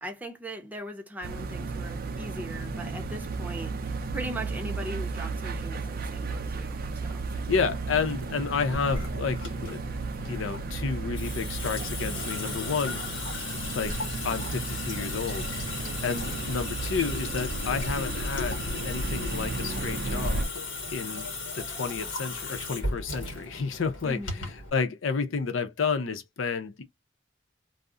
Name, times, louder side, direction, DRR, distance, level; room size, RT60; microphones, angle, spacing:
voice 1, 0.0-7.3 24.0-24.5, right 1 dB, 10° right, 0.6 m, -40 dB
sound 1, 1.2-20.5, right 3 dB, 50° right, 0.4 m, -34 dB
voice 2, 7.3-9.8 10.2-13.0 13.7-15.5 16.0-20.5 20.9-21.3 21.5-24.2 24.7-26.8, left 5 dB, 90° left, 0.6 m, -31 dB
Water tap faucet / Sink (filling or washing) / Drip, 8.7-24.7, left 3 dB, 70° left, 1.2 m, -36 dB
2.4 x 2.0 x 3.6 m
head